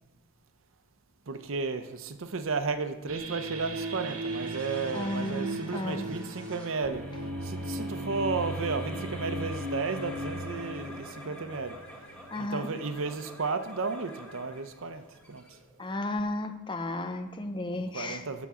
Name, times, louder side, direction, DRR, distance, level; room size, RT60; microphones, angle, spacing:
voice 1, 1.3-7.0 7.5-11.7 12.4-15.0 15.3-15.4 17.7-18.5, right 4 dB, 60° right, 9 dB, 0.7 m, -33 dB
sound 1, 3.1-12.4, right 1 dB, 80° right, 1.3 m, -37 dB
sound 2, 3.5-16.1, equal, 5° left, 1.4 m, -47 dB
voice 2, 4.9-6.0 12.3-12.7 15.8-18.2, left 1 dB, 20° left, 9 dB, 0.6 m, -33 dB
12.5 x 7.2 x 3.7 m, 1.0 s
head